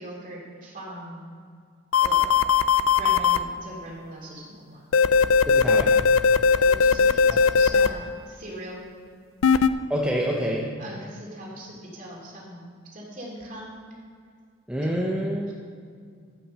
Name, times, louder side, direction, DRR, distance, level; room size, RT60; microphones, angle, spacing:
voice 1, 0.0-1.3 2.0-2.5 3.0-4.9 6.5-8.8 10.8-13.8 15.5-15.6, right 1 dB, 40° right, -4 dB, 3.1 m, -40 dB
sound 1, 1.9-3.4 4.9-7.9 9.4-9.7, left 5 dB, 70° left, 0.4 m, -18 dB
voice 2, 5.5-6.0 7.3-7.4 9.9-10.8 14.7-15.5, equal, 5° right, -3 dB, 0.8 m, -27 dB
14.0 x 6.0 x 6.5 m, 2.1 s
head